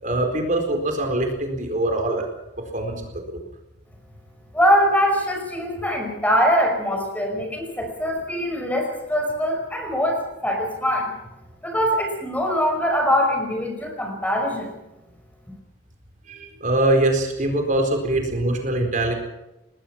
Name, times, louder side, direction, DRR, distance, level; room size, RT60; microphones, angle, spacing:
voice 1, 0.0-2.3 2.7-3.0 16.3-19.1, right 1 dB, 45° right, 3 dB, 4.2 m, -23 dB
voice 2, 4.5-11.1 11.6-14.7, equal, 10° left, 3 dB, 5.3 m, -22 dB
25.0 x 20.5 x 6.0 m, 0.98 s
head